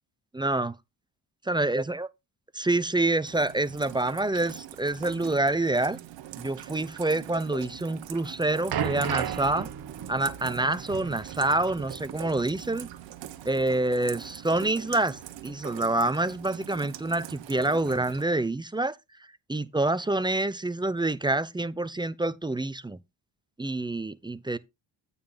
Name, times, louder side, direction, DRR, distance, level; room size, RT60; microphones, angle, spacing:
voice 1, 0.3-0.8 1.5-2.1 2.5-6.0 6.4-9.7 10.1-12.9 13.4-19.0 19.5-23.0 23.6-24.6, right 2 dB, 10° right, 0.5 m, -27 dB
Rain, 3.3-18.2, right 13 dB, 80° right, 1.0 m, -43 dB
sound 1, 8.1-13.0 13.2-13.4 14.2-14.3, right 9 dB, 60° right, 1.1 m, -35 dB
8.7 x 5.4 x 3.8 m
cardioid pair, 80°, 44 cm